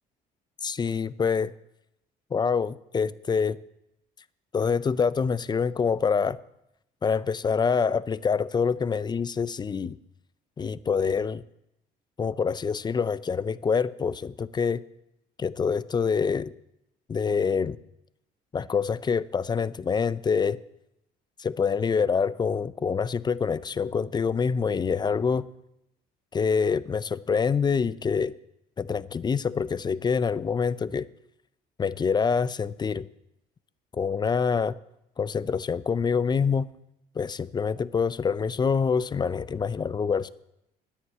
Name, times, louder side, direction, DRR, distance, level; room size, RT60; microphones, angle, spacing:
voice 1, 0.6-1.5 2.3-3.6 4.5-6.4 7.0-10.0 10.6-11.4 12.2-14.8 15.4-16.5 17.1-17.8 18.5-20.6 21.4-25.5 26.3-28.3 28.8-31.1 31.8-33.1 33.9-34.7 35.2-36.7 37.2-40.3, left 6 dB, 25° left, 17 dB, 0.5 m, -26 dB
10.5 x 9.5 x 8.1 m, 0.84 s
cardioid pair, 110°, 17 cm